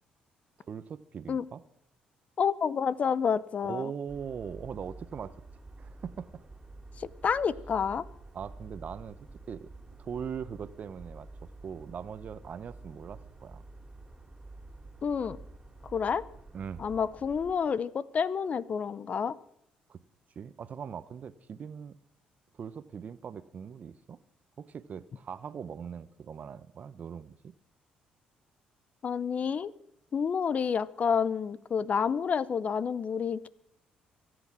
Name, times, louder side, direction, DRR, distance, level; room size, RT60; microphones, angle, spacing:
voice 1, 0.7-1.6 3.6-5.3 5.8-6.3 8.3-9.2 9.5-9.7 10.0-13.6 16.5-16.9 19.9-20.0 20.4-22.0 22.5-24.2 24.6-27.5, right 7 dB, 50° right, 15 dB, 0.8 m, -40 dB
voice 2, 2.4-3.9 7.0-8.1 15.0-15.4 15.8-16.2 16.8-19.4 29.0-29.7 30.1-33.5, left 6 dB, 45° left, 19 dB, 0.6 m, -29 dB
sound 1, 4.1-17.5, right 2 dB, 25° right, 2.9 m, -49 dB
24.0 x 8.1 x 6.2 m, 0.76 s
supercardioid pair, 70°, 3 cm